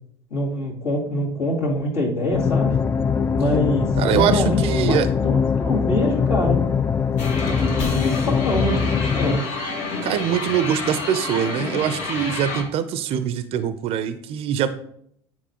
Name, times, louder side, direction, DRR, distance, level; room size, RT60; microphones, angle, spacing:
voice 1, 0.3-2.8 3.3-4.6 4.9-5.0 5.2-6.7 7.6-9.4, left 1 dB, 70° left, -6 dB, 2.1 m, -24 dB
sound 1, 2.3-9.4, left 6 dB, 20° left, 0.3 m, -22 dB
voice 2, 4.0-5.1 10.0-14.7, right 9 dB, 45° right, 12 dB, 0.5 m, -23 dB
sound 2, 7.2-12.6, left 3 dB, 55° left, 1.3 m, -29 dB
9.0 x 4.1 x 2.9 m, 0.68 s
figure-of-eight pair, 65°, 14 cm